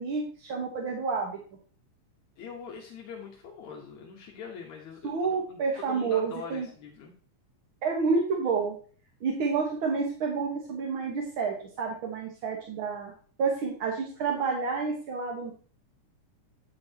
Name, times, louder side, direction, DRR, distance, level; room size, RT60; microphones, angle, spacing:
voice 1, 0.0-1.4 5.0-6.7 7.8-8.7 9.2-13.1 13.4-15.5, right 5 dB, 55° right, 0 dB, 1.6 m, -29 dB
voice 2, 2.4-7.1, left 6 dB, 70° left, 0 dB, 2.5 m, -43 dB
8.9 x 8.4 x 2.8 m, 0.42 s
omnidirectional pair, 3.5 m